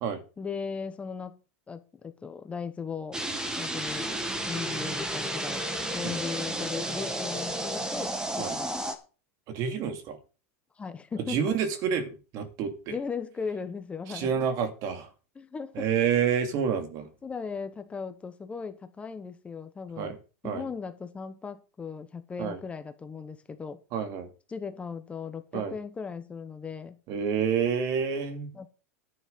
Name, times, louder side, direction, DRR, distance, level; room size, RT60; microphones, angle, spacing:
voice 1, 0.4-1.4 1.7-3.2 3.6-4.2 4.5-5.6 5.9-8.7 10.8-11.5 12.9-14.3 15.3-15.9 17.2-20.2 20.4-23.8 24.5-27.0 28.5-28.7, left 5 dB, 15° left, 1.1 m, -37 dB
sound 1, 3.1-8.9, right 1 dB, 10° right, 2.0 m, -32 dB
voice 2, 9.5-10.2 11.3-13.0 14.1-15.1 15.7-17.1 20.0-20.2 20.4-20.6 22.4-22.6 23.9-24.3 25.5-25.7 27.1-28.5, right 7 dB, 45° right, 2.6 m, -28 dB
11.0 x 9.2 x 5.3 m
supercardioid pair, 140°, 8 cm